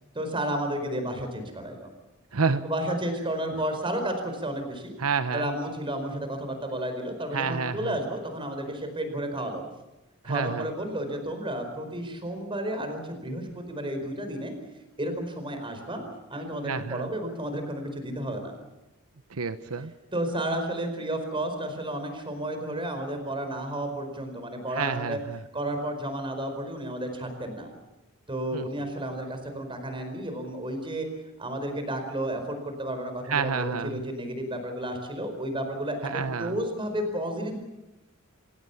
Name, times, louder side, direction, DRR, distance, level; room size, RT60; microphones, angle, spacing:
voice 1, 0.1-1.9 2.6-4.9 5.3-9.6 10.2-14.5 15.0-16.0 16.3-18.5 20.1-25.2 25.5-27.7 28.3-31.1 31.4-37.6, right 1 dB, 25° right, 6 dB, 4.8 m, -32 dB
voice 2, 2.3-2.6 5.0-5.5 7.3-7.9 10.2-10.7 16.6-17.1 19.3-19.9 24.7-25.4 28.5-28.7 33.3-34.0 36.0-36.6, right 5 dB, 90° right, 11 dB, 1.0 m, -29 dB
26.5 x 17.5 x 7.1 m, 0.98 s
head